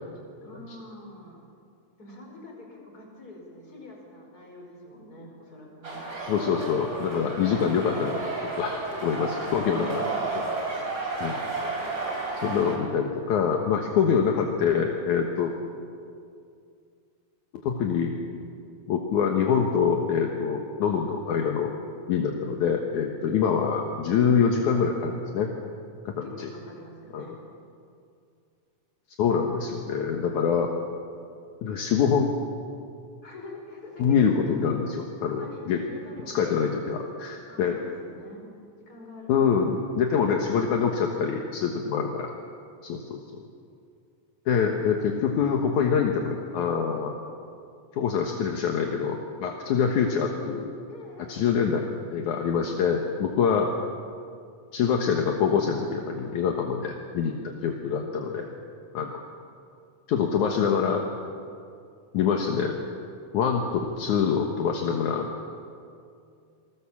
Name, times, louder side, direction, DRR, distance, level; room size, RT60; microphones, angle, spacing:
voice 1, 0.4-1.4 2.0-6.0 8.9-10.2 26.2-27.4 33.2-34.4 35.2-36.7 37.5-38.5 38.8-39.7 50.9-51.4 52.3-53.0, left 1 dB, 25° left, 0 dB, 5.5 m, -45 dB
sound 1, 5.8-12.8, right 3 dB, 30° right, 4.1 m, -32 dB
voice 2, 6.3-10.0 10.4-10.5 11.2-11.4 12.4-15.5 17.6-18.1 18.9-21.7 22.1-25.5 26.1-26.5 27.1-27.2 29.2-30.7 31.6-32.3 34.0-35.8 36.3-37.8 39.3-42.3 42.8-43.4 44.5-47.1 47.9-50.7 51.3-53.7 54.7-57.3 57.6-58.5 58.9-59.2 60.1-61.1 62.1-62.8 63.3-63.6 64.0-65.3, left 6 dB, 70° left, 2 dB, 2.7 m, -25 dB
28.0 x 20.5 x 7.3 m, 2.4 s
omnidirectional pair, 3.7 m